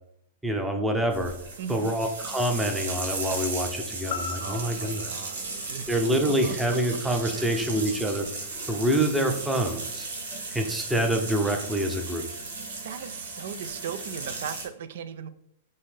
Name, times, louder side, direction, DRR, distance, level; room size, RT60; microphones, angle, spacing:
voice 1, 0.4-1.3 1.7-5.1 5.9-8.3 8.6-10.1 10.5-12.2, right 1 dB, 5° right, 3 dB, 0.7 m, -26 dB
sound 1, 1.1-14.6, right 3 dB, 85° right, 1.3 m, -36 dB
voice 2, 1.6-2.0 4.4-6.6 7.3-7.5 12.8-15.3, right 8 dB, 65° right, 13 dB, 0.5 m, -38 dB
sound 2, 4.1-8.2 8.6-8.7, left 7 dB, 65° left, 0.5 m, -41 dB
5.3 x 2.7 x 3.4 m, 0.75 s
hypercardioid pair, 140°, 0 cm